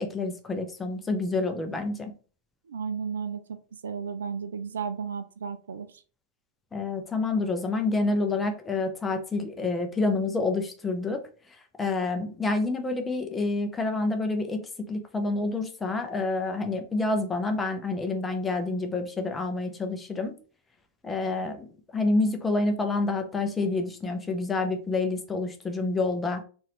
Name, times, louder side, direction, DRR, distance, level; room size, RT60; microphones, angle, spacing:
voice 1, 0.0-2.1 6.7-11.2 11.8-20.4 21.0-21.7 21.9-26.4, left 3 dB, 15° left, 5 dB, 0.7 m, -28 dB
voice 2, 2.7-5.9, right 6 dB, 65° right, 11 dB, 0.4 m, -34 dB
4.0 x 2.6 x 3.2 m, 0.39 s
figure-of-eight pair, 90°, 0 cm